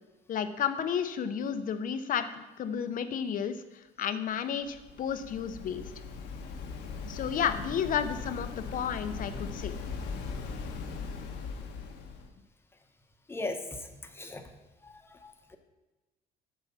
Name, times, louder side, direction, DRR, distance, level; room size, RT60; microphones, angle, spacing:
voice 1, 0.3-3.5 4.0-5.9 7.1-9.7, left 8 dB, 55° left, 10 dB, 0.7 m, -32 dB
Waves surf, 4.6-12.3, left 5 dB, 80° left, 1.2 m, -39 dB
voice 2, 14.8-15.6, left 2 dB, 15° left, 5 dB, 1.0 m, -38 dB
8.2 x 4.8 x 7.0 m, 1.1 s
cardioid pair, 110°, 17 cm